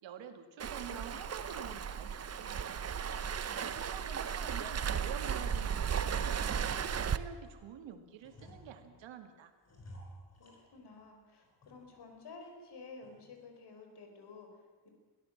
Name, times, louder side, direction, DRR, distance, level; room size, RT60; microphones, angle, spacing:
voice 1, 0.0-9.5, right 8 dB, 90° right, 7 dB, 2.4 m, -49 dB
Waves surf, 0.6-7.2, right 7 dB, 35° right, 0.9 m, -35 dB
sound 1, 1.7-1.8 2.3-2.4 2.9-3.8 4.1-4.8 5.1-7.7 8.2-9.1 9.6-11.1 11.4-12.1 12.4-12.5 13.0-13.4, equal, 35° left, 5.8 m, -56 dB
voice 2, 10.4-14.9, left 4 dB, 65° left, 4 dB, 5.2 m, -52 dB
22.5 x 16.5 x 7.5 m, 1.4 s
cardioid pair, 130°, 44 cm